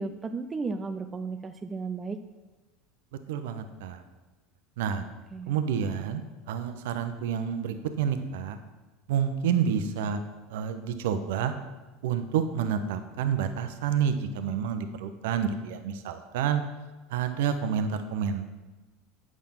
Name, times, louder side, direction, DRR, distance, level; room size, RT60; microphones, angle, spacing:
voice 1, 0.0-2.2 4.9-5.0 5.3-5.6, right 4 dB, 25° right, 8 dB, 0.5 m, -34 dB
voice 2, 3.3-4.0 4.8-5.1 5.5-6.2 6.5-8.6 9.1-10.2 10.5-11.5 12.0-16.6 17.1-18.5, right 8 dB, 70° right, 9 dB, 0.7 m, -29 dB
8.6 x 6.1 x 5.6 m, 1.2 s
hypercardioid pair, 80°, 0 cm